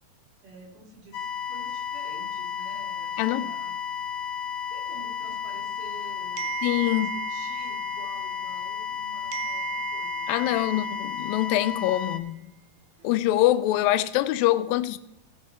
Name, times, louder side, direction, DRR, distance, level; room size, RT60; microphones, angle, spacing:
voice 1, 0.4-3.7 4.7-6.6 6.9-11.0 13.0-13.1, right 3 dB, 65° right, 4.3 m, -49 dB
sound 1, 1.1-12.2, left 8 dB, 65° left, 2.1 m, -33 dB
sound 2, 6.4-9.0 9.3-11.9, right 19 dB, 85° right, 2.7 m, -37 dB
voice 2, 6.6-7.1 10.3-12.5 13.0-15.0, left 14 dB, 85° left, 2.3 m, -24 dB
18.0 x 6.2 x 4.4 m
omnidirectional pair, 4.0 m